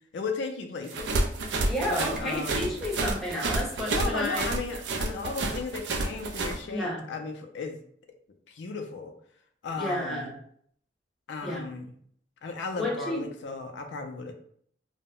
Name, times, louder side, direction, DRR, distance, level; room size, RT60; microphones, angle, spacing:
voice 1, 0.1-1.2 1.6-2.7 3.9-7.8 8.5-9.1 9.6-10.3 11.3-11.9 12.4-14.3, left 4 dB, 80° left, 5 dB, 0.4 m, -35 dB
sound 1, 0.9-6.6, right 2 dB, 75° right, 0.4 m, -30 dB
voice 2, 1.7-4.5 6.7-7.0 9.8-10.3 11.4-11.6 12.8-13.2, left 1 dB, ahead, -4 dB, 0.7 m, -31 dB
2.1 x 2.0 x 3.5 m, 0.63 s
head